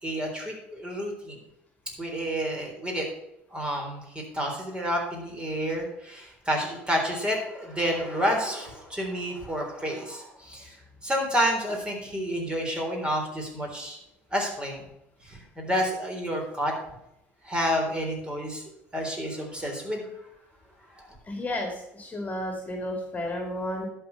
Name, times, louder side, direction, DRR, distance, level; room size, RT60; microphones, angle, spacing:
voice 1, 0.0-1.4 2.0-3.0 3.5-10.7 11.0-14.0 14.3-14.8 15.2-16.7 17.4-18.6 18.9-20.1 21.0-21.1, equal, 15° right, 0 dB, 3.7 m, -29 dB
voice 2, 21.2-23.9, left 1 dB, 25° left, 2 dB, 2.5 m, -32 dB
11.5 x 4.8 x 6.8 m, 0.84 s
hypercardioid pair, 65°, 6 cm